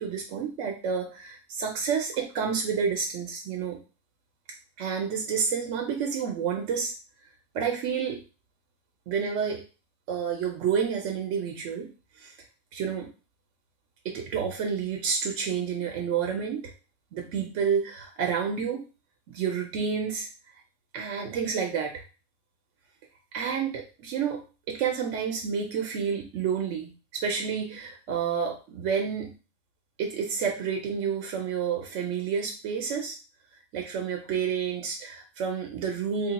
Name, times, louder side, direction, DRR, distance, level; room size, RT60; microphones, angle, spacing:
voice 1, 0.0-3.8 4.8-6.9 7.5-8.2 9.1-9.6 10.1-11.9 12.2-12.3 12.7-13.1 14.0-16.7 17.1-18.9 19.3-20.3 20.9-22.0 23.3-29.3 30.0-33.2 33.7-36.3, right 6 dB, 85° right, 2 dB, 0.9 m, -29 dB
3.3 x 2.2 x 3.9 m, 0.33 s
omnidirectional pair, 1.2 m